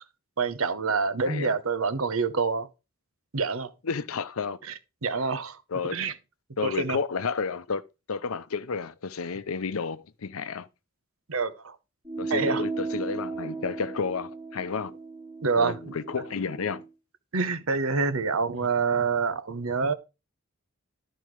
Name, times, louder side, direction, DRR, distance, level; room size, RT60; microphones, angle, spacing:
voice 1, 0.4-2.7 3.3-3.7 4.7-4.8 5.0-5.6 5.9-6.1 6.6-7.0 11.3-11.8 12.3-12.6 15.4-15.8 17.3-19.9, right 4 dB, 85° right, 0.9 m, -26 dB
voice 2, 1.2-1.6 3.8-4.6 5.7-6.0 6.6-7.8 8.1-10.7 12.2-14.9 15.6-16.8 18.5-18.7, left 5 dB, 90° left, 0.7 m, -31 dB
sound 1, 12.0-16.9, right 4 dB, 10° right, 4.9 m, -35 dB
12.0 x 4.2 x 4.7 m
head